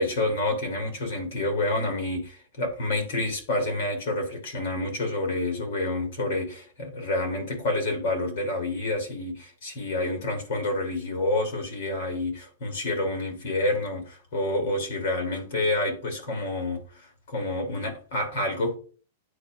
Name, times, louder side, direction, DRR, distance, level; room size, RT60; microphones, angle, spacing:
voice 1, 0.0-18.7, left 2 dB, 70° left, 2.8 m, -28 dB
9.9 x 4.5 x 2.4 m
hypercardioid pair, 125°, 0 cm